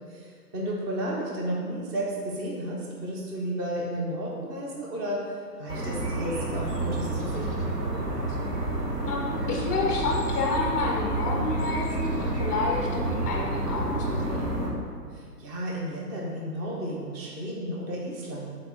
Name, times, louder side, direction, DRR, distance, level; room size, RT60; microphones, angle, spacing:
voice 1, 0.1-7.6 15.1-18.5, right 1 dB, 15° right, -3 dB, 0.8 m, -33 dB
sound 1, 5.7-14.7, right 1 dB, 75° right, 1.7 m, -29 dB
voice 2, 9.0-14.6, left 3 dB, 10° left, -1 dB, 0.5 m, -30 dB
6.8 x 4.3 x 4.5 m, 2.1 s
hypercardioid pair, 140°, 47 cm